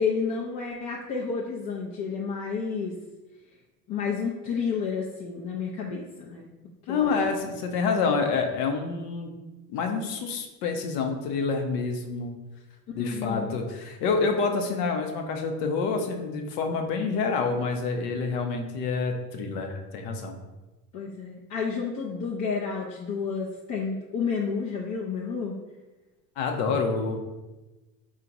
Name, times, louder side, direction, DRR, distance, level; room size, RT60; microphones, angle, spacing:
voice 1, 0.0-2.9 3.9-6.5 6.9-7.1 13.0-13.6 20.9-25.6, left 5 dB, 40° left, -4 dB, 0.8 m, -30 dB
voice 2, 6.9-9.3 9.7-12.3 12.9-20.4 26.4-27.2, left 4 dB, 70° left, 4 dB, 0.9 m, -27 dB
4.6 x 2.4 x 4.0 m, 1.1 s
hypercardioid pair, 85°, 49 cm